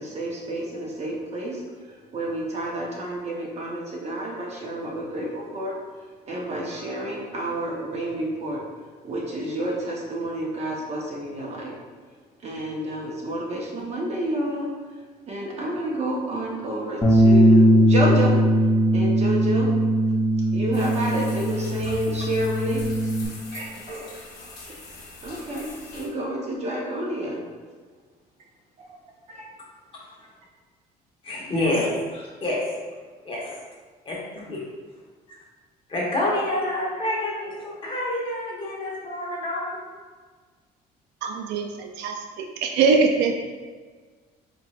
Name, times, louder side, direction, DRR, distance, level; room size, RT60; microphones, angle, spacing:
voice 1, 0.0-5.7 6.3-8.6 9.0-11.8 12.4-14.7 15.3-18.4 18.9-19.7 20.5-22.8 23.5-24.1 25.2-27.4 28.8-28.9 29.3-29.4, right 1 dB, 40° right, -3 dB, 0.9 m, -29 dB
Bass guitar, 17.0-23.3, equal, 15° left, 0.6 m, -19 dB
sound 1, 20.7-26.1, left 2 dB, 70° left, 1.1 m, -42 dB
voice 2, 31.2-32.6 33.2-33.6 34.0-34.6 35.3-35.4 35.9-39.8, left 1 dB, 30° left, -5 dB, 1.1 m, -28 dB
voice 3, 41.2-43.3, right 4 dB, 85° right, 4 dB, 0.4 m, -23 dB
4.4 x 2.9 x 2.5 m, 1.5 s
cardioid pair, 110°, 17 cm